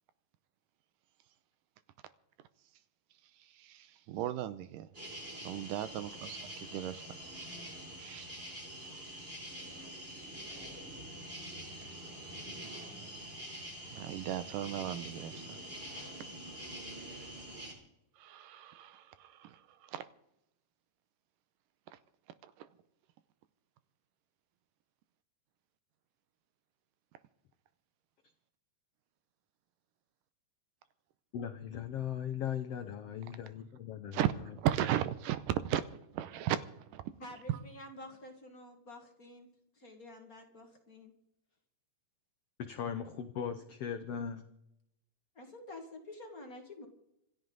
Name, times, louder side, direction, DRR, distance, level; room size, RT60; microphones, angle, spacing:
voice 1, 3.5-4.9 5.4-6.1 6.7-7.1 8.0-8.3 13.9-15.6 18.2-20.0 22.4-22.7 34.1-35.8 36.1-37.0, right 12 dB, 80° right, 14 dB, 2.3 m, -36 dB
sound 1, 4.9-17.7, right 1 dB, 15° right, 3.3 m, -45 dB
voice 2, 31.3-34.2 42.6-44.5, left 8 dB, 75° left, 8 dB, 1.4 m, -38 dB
voice 3, 37.2-39.5 39.7-41.1 45.4-46.9, left 1 dB, 30° left, 3 dB, 1.9 m, -49 dB
26.5 x 11.0 x 4.0 m, 0.81 s
omnidirectional pair, 3.9 m